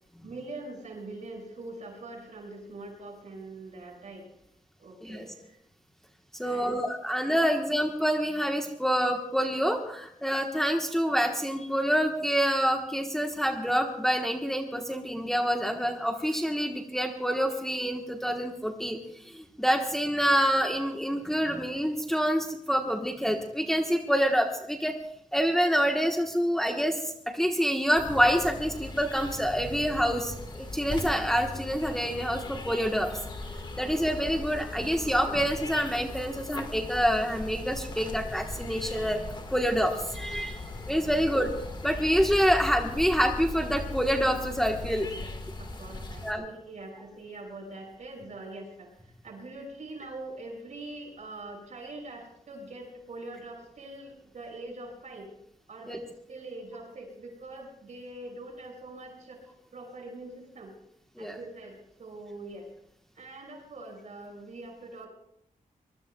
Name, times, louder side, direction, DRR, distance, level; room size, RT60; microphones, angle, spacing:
voice 1, 0.2-4.3 4.8-5.6 6.4-7.1 41.1-41.2 45.2-45.3 45.6-55.3 55.7-60.7 61.2-62.7 63.1-65.1, right 2 dB, 60° right, 1 dB, 6.0 m, -43 dB
voice 2, 6.3-25.0 25.3-33.1 33.5-39.2 39.5-41.5 41.8-45.1 46.2-46.4 55.9-56.0 61.2-61.4, equal, 5° left, 2 dB, 1.1 m, -27 dB
sound 1, 28.0-46.3, left 2 dB, 35° left, 1.6 m, -39 dB
24.0 x 21.0 x 2.3 m, 0.73 s
wide cardioid pair, 155°, 14 cm